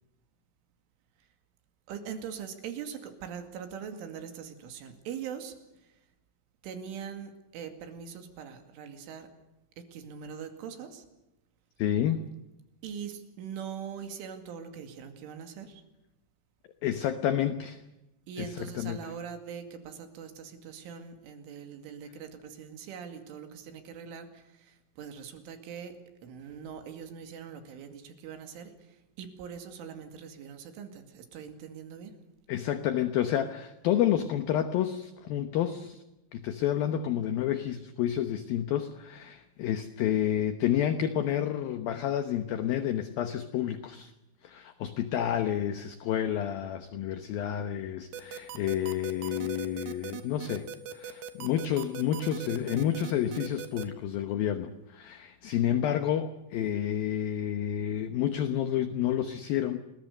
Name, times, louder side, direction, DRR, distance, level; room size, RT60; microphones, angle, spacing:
voice 1, 1.9-5.9 6.6-9.3 9.8-11.1 12.8-15.9 18.3-32.1, right 7 dB, 90° right, 6 dB, 4.8 m, -42 dB
voice 2, 11.8-12.2 16.8-17.8 18.4-19.0 32.5-36.0 36.3-44.1 44.4-59.8, left 10 dB, 70° left, 9 dB, 2.3 m, -30 dB
sound 1, 48.1-53.8, right 10 dB, 65° right, 2.9 m, -39 dB
29.0 x 21.0 x 6.7 m, 0.95 s
omnidirectional pair, 5.4 m